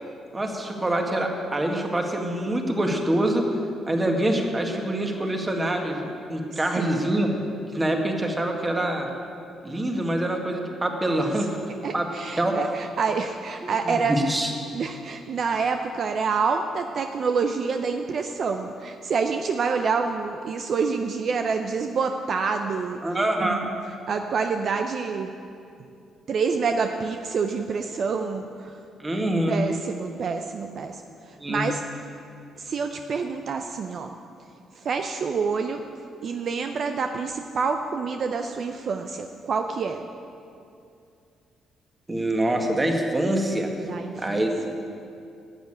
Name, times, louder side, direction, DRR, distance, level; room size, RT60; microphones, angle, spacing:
voice 1, 0.3-3.5 3.9-7.3 7.7-9.1 9.6-11.6 11.9-12.1 12.4-12.6 13.6-14.5 23.0-23.7 29.0-29.6 31.4-31.6 42.1-43.7 44.2-44.7, right 1 dB, 20° right, 2 dB, 1.8 m, -25 dB
voice 2, 6.5-7.0 11.8-14.2 14.7-23.0 23.4-23.7 24.1-25.3 26.3-28.7 29.5-31.0 31.3-31.8 32.6-34.1 34.8-35.8 36.2-40.1 43.9-44.4, right 5 dB, 55° right, 6 dB, 0.6 m, -27 dB
11.5 x 8.3 x 8.7 m, 2.5 s
cardioid pair, 90°, 0 cm